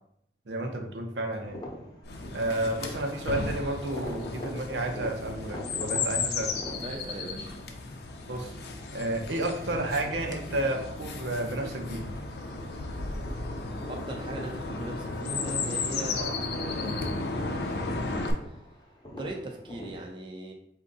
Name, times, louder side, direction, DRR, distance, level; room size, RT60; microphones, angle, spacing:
voice 1, 0.5-1.6 2.3-6.5 8.3-8.6 8.9-12.1 16.2-16.4, right 1 dB, 80° right, 2 dB, 0.8 m, -31 dB
sound 1, 1.4-20.0, left 1 dB, 25° left, 0.8 m, -45 dB
Chirp tweet, 2.0-18.3, left 3 dB, 65° left, 0.5 m, -34 dB
voice 2, 6.8-7.5 13.9-17.3 18.4-18.7 19.2-20.5, right 2 dB, 25° right, 1 dB, 0.4 m, -39 dB
4.4 x 2.7 x 3.8 m, 0.72 s
head